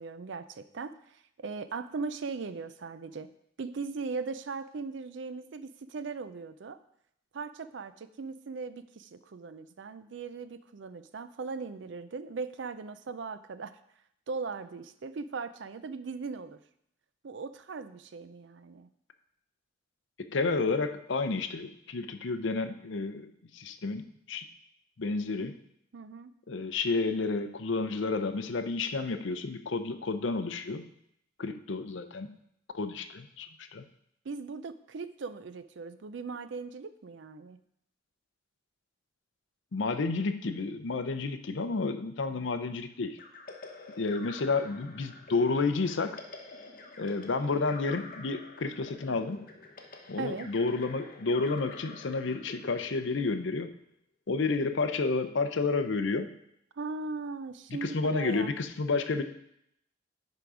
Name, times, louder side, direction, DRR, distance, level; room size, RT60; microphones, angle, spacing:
voice 1, 0.0-3.3 3.6-6.8 7.3-13.8 14.3-16.6 17.2-18.9 25.9-26.3 34.2-37.6 50.2-50.5 56.7-58.6, right 4 dB, 60° right, 13 dB, 0.4 m, -39 dB
voice 2, 20.3-24.5 25.0-25.5 26.5-30.9 31.4-32.4 32.7-33.8 39.7-43.2 44.0-46.2 47.0-49.5 50.1-53.7 54.3-56.3 57.8-59.2, left 3 dB, 65° left, 9 dB, 0.6 m, -31 dB
sound 1, 43.2-53.8, left 3 dB, 45° left, 1.0 m, -48 dB
10.5 x 3.8 x 4.9 m, 0.74 s
head